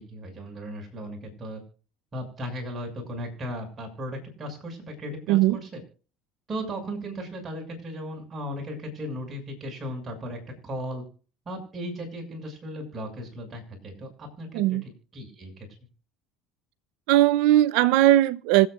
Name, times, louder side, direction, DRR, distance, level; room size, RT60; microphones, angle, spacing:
voice 1, 0.0-1.6 2.1-5.8 6.5-11.0 11.4-14.8 15.1-15.7, equal, 30° right, 6.6 m, -36 dB
voice 2, 5.3-5.6 14.5-14.8 17.1-18.7, right 14 dB, 75° right, 0.7 m, -19 dB
25.5 x 8.7 x 2.5 m
supercardioid pair, 95°, 0 cm